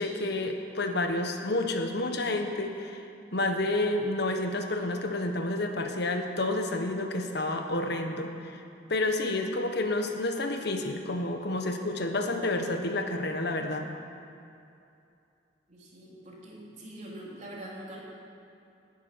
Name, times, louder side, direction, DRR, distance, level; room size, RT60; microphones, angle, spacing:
voice 1, 0.0-3.0 3.3-8.6 8.9-13.9, left 2 dB, 65° left, 5 dB, 1.3 m, -30 dB
voice 2, 15.7-18.0, right 1 dB, 40° right, -4 dB, 3.5 m, -44 dB
11.5 x 11.5 x 9.4 m, 2.6 s
head